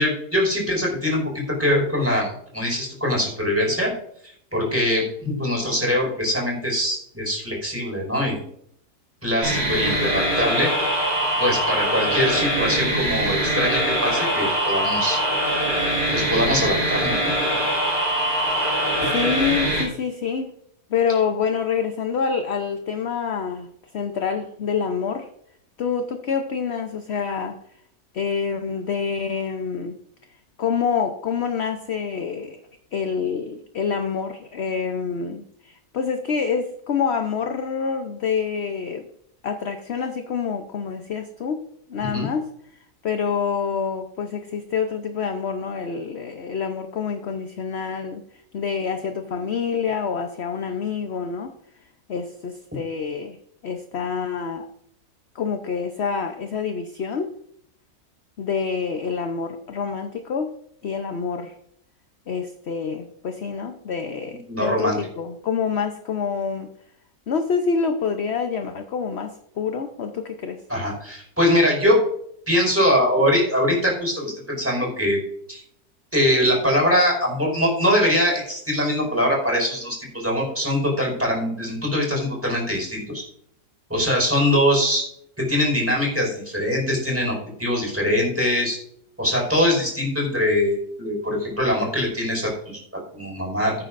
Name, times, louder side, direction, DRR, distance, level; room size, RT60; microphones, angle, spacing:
voice 1, 0.0-3.9 4.2-8.4 9.2-10.7 11.4-15.2 16.1-17.3 42.0-42.3 64.5-65.0 70.7-72.0 72.5-75.2 75.5-75.6 76.1-83.2 83.9-85.0 85.4-88.8 89.2-92.8 93.1-93.7, left 1 dB, 10° right, -2 dB, 5.1 m, -22 dB
sound 1, 9.4-19.8, right 1 dB, 80° right, 5.2 m, -23 dB
voice 2, 19.0-20.5 20.9-25.3 25.8-27.6 28.1-30.0 30.6-32.6 32.9-39.1 39.4-41.6 41.9-42.5 43.0-48.3 48.5-51.5 52.1-53.4 53.6-54.7 55.3-57.3 58.4-60.5 60.8-61.5 62.3-66.7 67.3-70.6, left 6 dB, 50° left, 7 dB, 0.9 m, -27 dB
16.5 x 9.3 x 2.6 m, 0.70 s
omnidirectional pair, 1.7 m